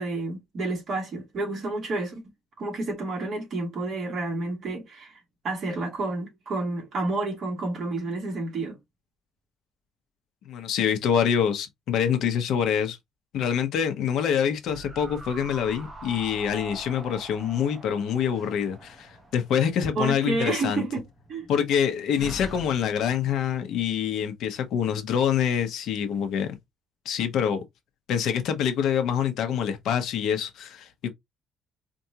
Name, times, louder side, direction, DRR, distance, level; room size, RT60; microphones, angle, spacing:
voice 1, 0.0-2.2 2.6-8.8 20.0-21.0 21.3-21.5, right 2 dB, 40° right, 2.0 m, -30 dB
voice 2, 10.4-13.0 13.3-20.8 21.5-26.6 27.0-27.6 28.1-31.1, left 8 dB, 65° left, 0.9 m, -26 dB
sound 1, 14.7-19.9 20.2-20.3, right 3 dB, 25° right, 0.7 m, -44 dB
Slam, 18.3-23.8, left 2 dB, ahead, 1.1 m, -46 dB
4.5 x 2.6 x 2.8 m
cardioid pair, 170°, 0 cm